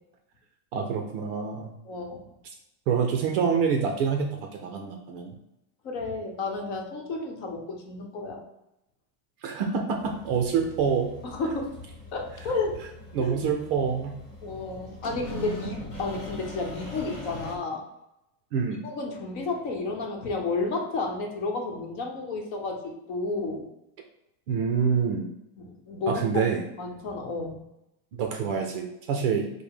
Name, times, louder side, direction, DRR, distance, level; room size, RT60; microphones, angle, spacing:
voice 1, 0.7-1.7 2.9-5.3 9.4-11.2 13.1-14.2 18.5-18.8 24.5-25.3 26.1-26.6 28.1-29.6, right 6 dB, 40° right, 3 dB, 0.4 m, -26 dB
voice 2, 1.8-2.2 5.8-8.5 11.2-11.8 12.1-12.8 13.2-13.4 14.4-17.8 18.8-23.7 25.6-26.5 26.8-27.6, left 3 dB, 50° left, 2 dB, 0.9 m, -32 dB
sound 1, 10.0-17.6, left 1 dB, 30° left, 1.3 m, -41 dB
5.2 x 2.1 x 4.8 m, 0.88 s
supercardioid pair, 180°, 46 cm